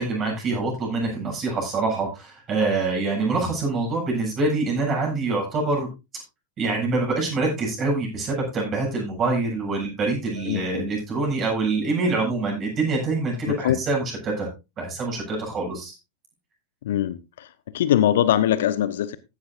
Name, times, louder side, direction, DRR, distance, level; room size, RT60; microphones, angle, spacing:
voice 1, 0.0-5.9 6.6-14.5 14.8-15.9, right 3 dB, 30° right, 7.6 m, -25 dB
voice 2, 10.5-10.8 13.5-13.8 16.8-17.5 17.7-19.2, left 11 dB, 60° left, 0.7 m, -22 dB
15.0 x 11.5 x 2.5 m
figure-of-eight pair, 90°, 0 cm